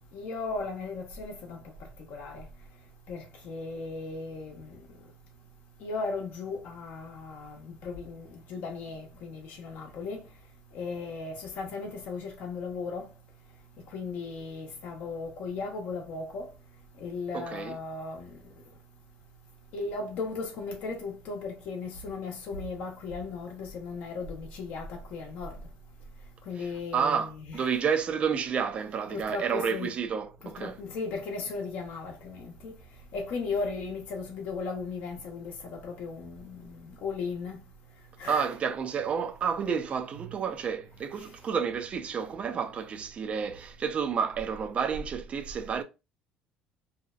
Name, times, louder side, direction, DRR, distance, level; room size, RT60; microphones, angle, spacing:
voice 1, 0.1-1.6 2.1-2.5 3.1-4.8 5.8-10.2 10.7-13.1 13.8-16.5 17.0-18.3 19.7-25.5 26.5-27.6 29.1-29.9 30.4-32.7 33.1-37.6 38.2-38.4 40.2-40.3, left 4 dB, 65° left, 0.7 m, -36 dB
voice 2, 17.3-17.8 26.6-30.8 38.2-45.8, right 6 dB, 35° right, 0.4 m, -30 dB
2.7 x 2.0 x 2.3 m
cardioid pair, 110°, 3 cm